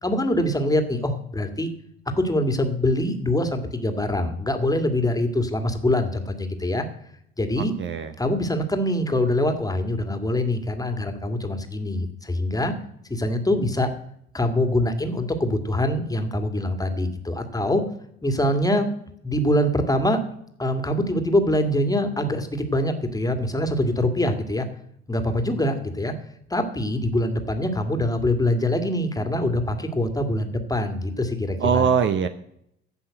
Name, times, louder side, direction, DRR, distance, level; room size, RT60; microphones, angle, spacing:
voice 1, 0.0-1.7 2.2-6.9 7.4-7.7 8.2-12.7 13.1-13.9 14.3-17.8 18.2-18.9 19.2-20.2 20.6-24.7 25.1-26.1 26.5-31.9, left 1 dB, 10° left, 7 dB, 1.8 m, -24 dB
voice 2, 7.6-8.1 31.6-32.3, right 7 dB, 35° right, 10 dB, 0.8 m, -22 dB
15.0 x 5.6 x 7.8 m, 0.73 s
figure-of-eight pair, 55°, 32 cm